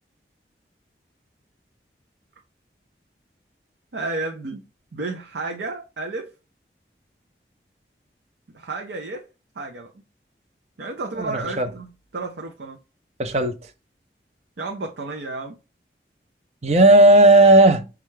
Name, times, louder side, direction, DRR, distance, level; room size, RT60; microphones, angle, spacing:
voice 1, 3.9-4.7 4.9-6.3 8.5-9.3 9.6-10.0 10.8-12.8 14.6-15.6, right 3 dB, 85° right, 0.6 m, -32 dB
voice 2, 11.1-11.7 13.2-13.6 16.6-17.9, right 1 dB, 40° right, 0.5 m, -14 dB
5.5 x 2.4 x 3.2 m
head